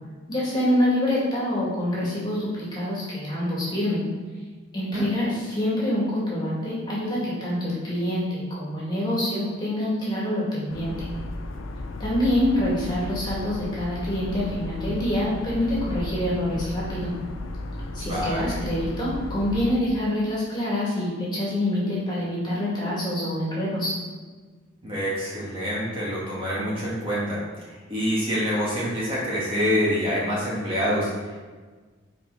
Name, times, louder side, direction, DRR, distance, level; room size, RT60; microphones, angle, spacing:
voice 1, 0.3-4.1 4.7-11.1 12.0-17.1 17.9-23.9, left 1 dB, 20° left, -7 dB, 2.2 m, -26 dB
sound 1, 10.7-19.8, left 2 dB, 75° left, 0.6 m, -34 dB
voice 2, 18.0-18.6 24.8-31.4, equal, 25° right, -7 dB, 1.8 m, -26 dB
6.9 x 4.9 x 4.8 m, 1.4 s
head